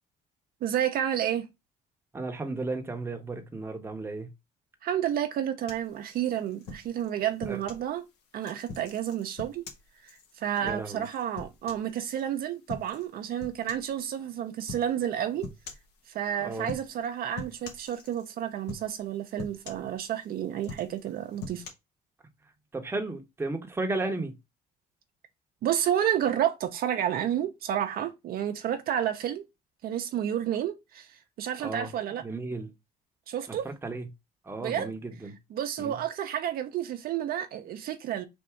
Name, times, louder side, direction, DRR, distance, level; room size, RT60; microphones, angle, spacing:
voice 1, 0.6-1.5 4.8-8.0 8.3-9.6 10.4-15.5 16.1-21.6 25.6-29.5 29.8-32.2 33.3-33.7 34.6-34.9 35.5-38.2, right 10 dB, 60° right, 0.7 m, -30 dB
voice 2, 2.1-4.3 7.5-7.6 10.6-11.1 16.4-16.7 22.7-24.3 31.6-31.9 32.2-32.7 33.8-34.1 34.5-35.3 35.8-36.0, right 2 dB, 15° right, 0.8 m, -34 dB
sound 1, 5.7-7.9 8.4-12.2 12.7-13.1 13.4-14.0 14.7-14.9 15.4-15.9 16.6-17.1 17.4-18.3 18.7-19.1 19.4-20.2 20.6-21.7, left 4 dB, 80° left, 1.2 m, -43 dB
3.5 x 2.6 x 4.4 m
cardioid pair, 110°, 17 cm